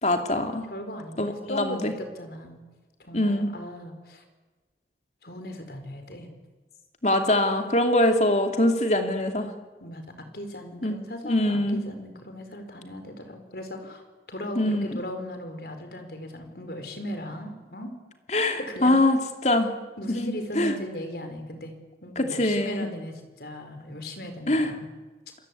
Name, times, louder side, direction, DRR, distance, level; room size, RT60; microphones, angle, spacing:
voice 1, 0.0-0.6 1.2-1.9 3.1-3.5 7.0-9.5 10.8-11.0 11.2-11.8 14.6-15.0 18.3-19.7 20.2-20.7 22.2-22.9 24.5-24.7, left 1 dB, 40° left, 5 dB, 2.8 m, -23 dB
voice 2, 0.7-2.6 3.0-4.2 5.2-6.3 9.8-14.0 14.3-17.9 18.6-18.9 20.0-21.7 22.0-24.9, equal, 60° left, 7 dB, 4.7 m, -37 dB
28.5 x 22.0 x 8.6 m, 1.3 s
head